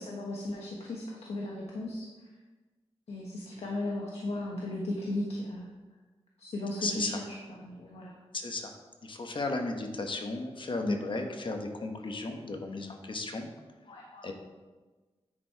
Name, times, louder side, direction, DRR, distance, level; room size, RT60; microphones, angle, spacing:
voice 1, 0.0-2.1 3.1-5.7 6.4-7.3 7.6-8.1 10.8-11.0 13.9-14.3, left 1 dB, 90° left, -2 dB, 1.1 m, -36 dB
voice 2, 6.8-7.2 8.3-8.7 9.0-13.5 14.2-14.3, left 3 dB, 50° left, 4 dB, 1.0 m, -35 dB
9.8 x 4.6 x 4.5 m, 1.3 s
wide cardioid pair, 90°, 10 cm